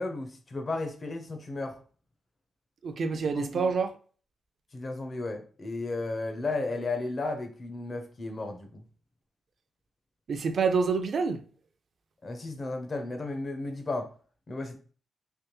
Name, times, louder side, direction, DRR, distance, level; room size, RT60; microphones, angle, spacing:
voice 1, 0.0-1.8 3.3-3.7 4.7-8.8 12.2-14.1 14.5-14.8, left 2 dB, 40° left, 0.8 m, -34 dB
voice 2, 2.8-3.9 10.3-11.4, right 5 dB, 60° right, 0.5 m, -27 dB
3.4 x 3.1 x 3.0 m
cardioid pair, 95°, 0 cm